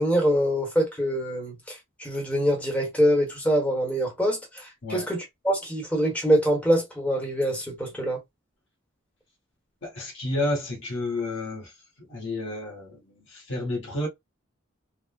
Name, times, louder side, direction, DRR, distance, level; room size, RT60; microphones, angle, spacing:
voice 1, 0.0-8.2, equal, 5° left, 0.9 m, -25 dB
voice 2, 9.8-14.1, left 2 dB, 65° left, 1.0 m, -31 dB
3.4 x 2.0 x 2.2 m
head